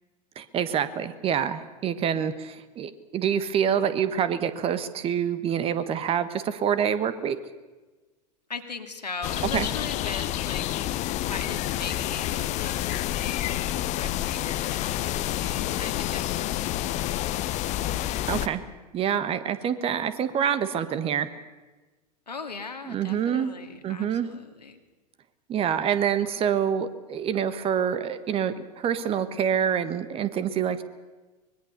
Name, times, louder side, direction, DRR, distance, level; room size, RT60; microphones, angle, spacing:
voice 1, 0.3-7.4 9.5-9.7 18.3-18.6 18.9-21.3 22.8-23.5 23.8-24.3 25.5-30.8, right 8 dB, 25° right, 13 dB, 1.5 m, -26 dB
voice 2, 8.5-10.7 11.2-13.7 13.9-18.0 22.3-24.8, left 4 dB, 80° left, 6 dB, 2.4 m, -39 dB
sound 1, 9.2-18.5, left 14 dB, 35° left, 1.2 m, -29 dB
24.5 x 21.5 x 6.8 m, 1.2 s
figure-of-eight pair, 90°, 21 cm